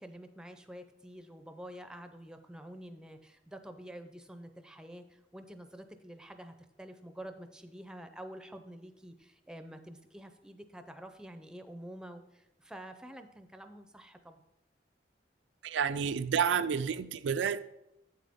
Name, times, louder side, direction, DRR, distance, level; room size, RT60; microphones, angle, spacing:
voice 1, 0.0-14.4, right 1 dB, 5° right, 0.5 m, -48 dB
voice 2, 15.6-17.6, right 7 dB, 90° right, 0.4 m, -30 dB
8.0 x 7.6 x 3.6 m
head